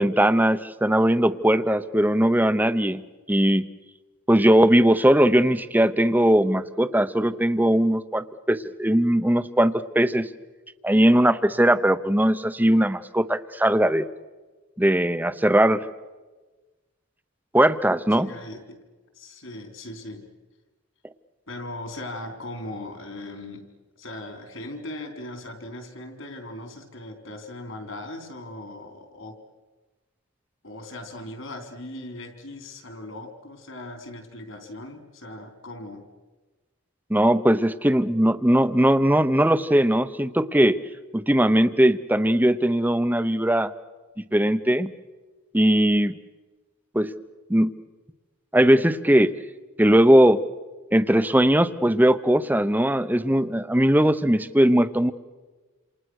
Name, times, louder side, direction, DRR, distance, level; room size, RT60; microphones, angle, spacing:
voice 1, 0.0-3.0 3.3-3.7 4.3-10.3 10.8-14.1 14.8-15.9 17.5-18.3 37.1-40.8 41.1-43.7 44.3-44.9 45.5-46.1 46.9-47.1 47.5-47.7 48.5-49.3 49.8-50.4 50.9-55.1, right 1 dB, 10° right, 13 dB, 0.8 m, -19 dB
voice 2, 18.1-18.8 19.1-20.3 21.5-23.7 24.0-29.4 30.6-36.1, left 1 dB, 65° left, 6 dB, 4.0 m, -39 dB
28.5 x 28.0 x 6.4 m, 1.3 s
head